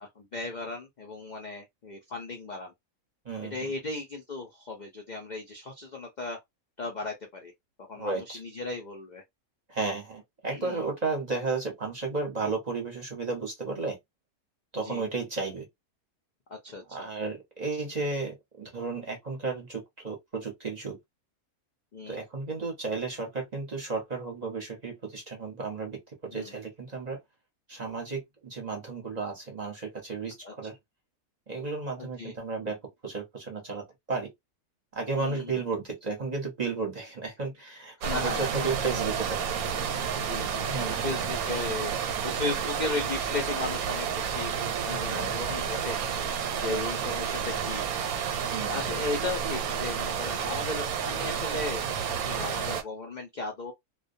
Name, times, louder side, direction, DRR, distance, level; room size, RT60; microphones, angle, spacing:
voice 1, 0.2-2.7 3.4-6.4 6.8-7.5 7.8-9.2 10.5-10.9 14.8-15.0 16.5-17.1 21.9-22.2 26.3-26.5 30.4-30.5 32.0-32.3 35.2-35.6 38.0-38.8 40.1-41.9 42.2-44.5 44.9-46.0 46.5-47.9 48.6-51.8 52.1-53.7, left 3 dB, 75° left, 0.4 m, -36 dB
voice 2, 8.0-8.4 9.7-14.0 14.7-15.7 16.9-21.0 22.1-27.2 27.7-30.8 31.5-34.3 34.9-39.4 40.7-41.2 45.1-45.4 46.7-46.8 48.5-48.9, right 4 dB, 35° right, 0.7 m, -33 dB
sound 1, 38.0-52.8, right 7 dB, 85° right, 1.1 m, -30 dB
2.2 x 2.2 x 2.6 m
omnidirectional pair, 1.5 m